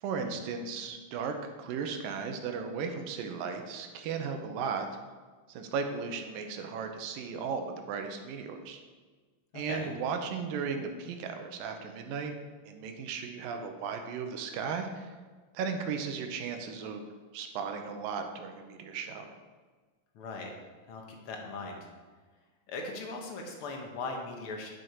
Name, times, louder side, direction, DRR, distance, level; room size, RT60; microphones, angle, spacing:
voice 1, 0.0-4.9 5.5-8.8 9.5-12.3 12.6-15.1 15.5-17.0 17.3-19.3, right 5 dB, 85° right, 5 dB, 2.5 m, -36 dB
voice 2, 9.5-9.9 20.1-20.5 20.9-21.9 22.7-24.7, left 3 dB, 60° left, 1 dB, 1.5 m, -39 dB
10.5 x 6.5 x 4.6 m, 1.4 s
omnidirectional pair, 4.0 m